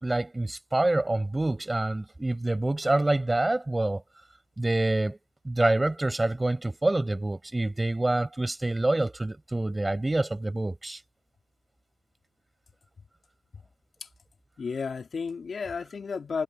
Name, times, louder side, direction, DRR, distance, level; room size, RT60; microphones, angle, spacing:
voice 1, 0.0-4.0 4.6-5.2 5.4-11.0, right 2 dB, 15° right, 4.8 m, -26 dB
voice 2, 14.6-16.4, left 5 dB, 40° left, 2.8 m, -32 dB
cardioid pair, 90°, 0 cm